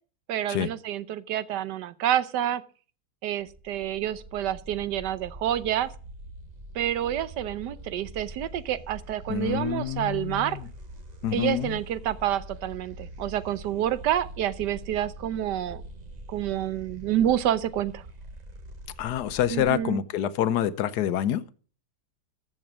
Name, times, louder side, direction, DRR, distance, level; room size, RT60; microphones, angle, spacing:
voice 1, 0.3-2.6 3.2-5.9 6.7-10.6 11.3-15.8 16.3-18.0 19.5-20.0, right 11 dB, 90° right, 1.4 m, -28 dB
sound 1, 3.3-19.8, right 1 dB, 30° right, 0.9 m, -44 dB
voice 2, 9.3-10.6 11.2-11.8 19.0-21.4, left 11 dB, 75° left, 1.3 m, -27 dB
14.0 x 7.0 x 6.1 m
omnidirectional pair, 1.8 m